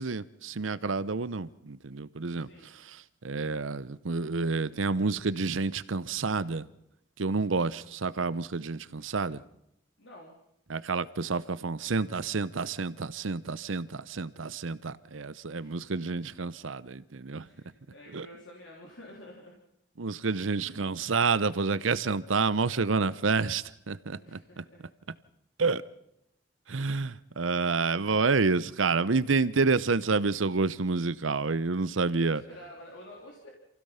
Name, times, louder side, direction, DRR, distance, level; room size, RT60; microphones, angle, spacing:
voice 1, 0.0-6.7 7.2-9.4 10.7-17.5 18.1-18.3 20.0-24.6 25.6-25.8 26.7-32.4, right 4 dB, 90° right, 0.8 m, -29 dB
voice 2, 2.4-2.7 10.0-10.4 15.5-15.9 17.4-19.6 24.2-24.8 32.2-33.5, left 1 dB, 75° left, 3.4 m, -49 dB
27.5 x 16.5 x 5.7 m
head